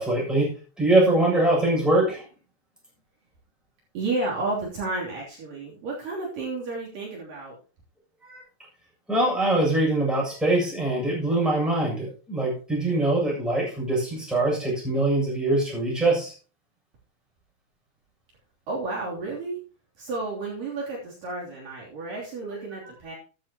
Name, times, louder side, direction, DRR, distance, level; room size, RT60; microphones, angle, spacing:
voice 1, 0.0-2.3 8.2-8.4 9.1-16.3 22.4-22.5, right 2 dB, ahead, -4 dB, 7.0 m, -23 dB
voice 2, 3.9-7.6 18.7-19.6 20.0-23.1, right 3 dB, 60° right, -4 dB, 4.6 m, -31 dB
14.0 x 10.5 x 3.0 m, 0.35 s
omnidirectional pair, 4.6 m